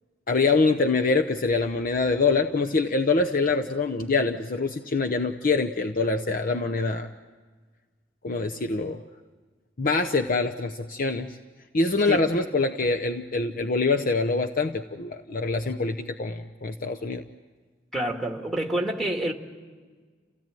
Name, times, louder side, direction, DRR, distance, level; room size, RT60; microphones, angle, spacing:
voice 1, 0.3-7.1 8.2-9.0 9.8-11.4 11.7-17.2, left 3 dB, 50° left, 5 dB, 0.8 m, -25 dB
voice 2, 17.9-19.3, right 1 dB, ahead, 2 dB, 2.0 m, -27 dB
28.5 x 16.5 x 9.2 m, 1.5 s
head